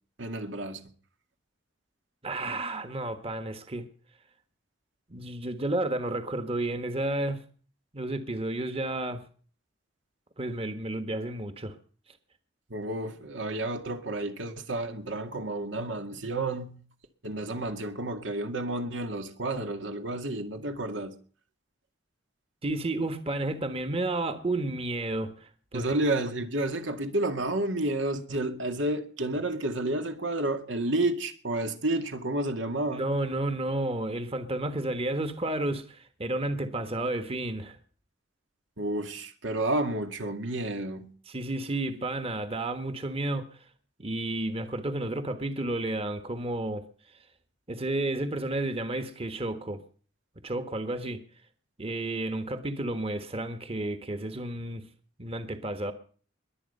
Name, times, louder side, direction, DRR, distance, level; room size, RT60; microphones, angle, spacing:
voice 1, 0.2-0.9 12.7-16.8 17.2-21.1 25.7-33.1 38.8-41.1, right 2 dB, 85° right, 2.2 m, -30 dB
voice 2, 2.2-3.9 5.1-7.4 7.9-9.2 10.4-11.7 22.6-26.0 32.9-37.8 41.3-43.5 44.0-46.8 47.7-49.8 50.4-51.2 51.8-54.8 55.2-55.9, right 2 dB, 30° right, 1.4 m, -31 dB
22.0 x 8.7 x 5.5 m
head